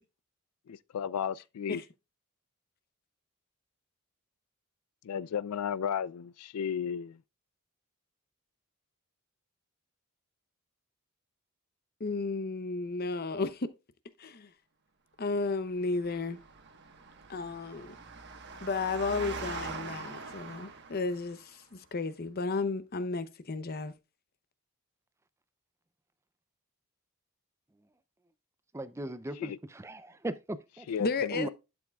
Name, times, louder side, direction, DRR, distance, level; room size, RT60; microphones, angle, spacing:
voice 1, 0.7-1.8 5.0-7.2 29.4-29.6 30.9-31.5, left 8 dB, 90° left, 0.4 m, -34 dB
voice 2, 12.0-13.7 14.2-14.5 15.2-16.4 17.3-17.9 18.6-23.9 31.0-31.5, left 3 dB, 45° left, 0.7 m, -33 dB
Engine, 15.8-21.4, right 4 dB, 50° right, 1.2 m, -43 dB
voice 3, 28.7-30.9 31.3-31.5, right 1 dB, 10° right, 0.4 m, -38 dB
11.5 x 7.0 x 2.3 m
head